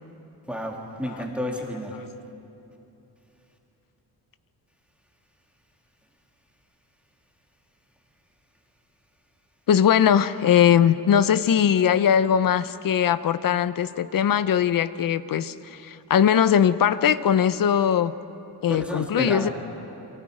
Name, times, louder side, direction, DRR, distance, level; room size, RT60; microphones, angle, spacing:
voice 1, 0.5-2.0 18.7-19.5, equal, 5° right, 0 dB, 2.1 m, -31 dB
voice 2, 9.7-18.1 18.6-19.5, left 9 dB, 55° left, 14 dB, 0.7 m, -20 dB
29.5 x 23.5 x 4.9 m, 3.0 s
wide cardioid pair, 155°, 40 cm